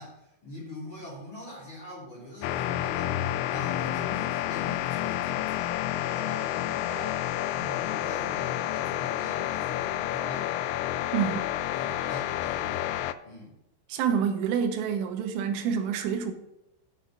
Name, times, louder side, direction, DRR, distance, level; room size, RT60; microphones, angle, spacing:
voice 1, 0.0-3.2 3.5-10.6 11.2-11.4 11.7-13.6, left 1 dB, 30° left, 3.3 m, -43 dB
sound 1, 2.4-13.1, left 13 dB, 85° left, 2.8 m, -30 dB
voice 2, 11.1-11.4 13.9-16.3, right 7 dB, 90° right, 3.6 m, -27 dB
10.5 x 6.9 x 6.2 m
omnidirectional pair, 5.5 m